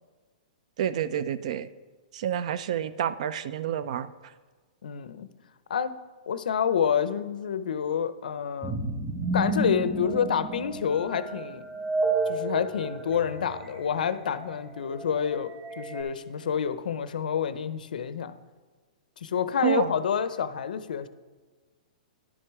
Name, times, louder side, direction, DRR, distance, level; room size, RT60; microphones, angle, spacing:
voice 1, 0.8-1.7 2.1-4.1 19.6-19.9, right 10 dB, 50° right, 16 dB, 0.4 m, -28 dB
voice 2, 4.8-5.3 5.7-5.9 6.3-8.8 9.3-11.6 12.3-18.3 19.2-21.1, left 7 dB, 85° left, 13 dB, 0.6 m, -28 dB
sound 1, 8.6-16.0, right 2 dB, 15° right, 1.6 m, -31 dB
11.0 x 6.3 x 4.7 m, 1.4 s
hypercardioid pair, 165°, 4 cm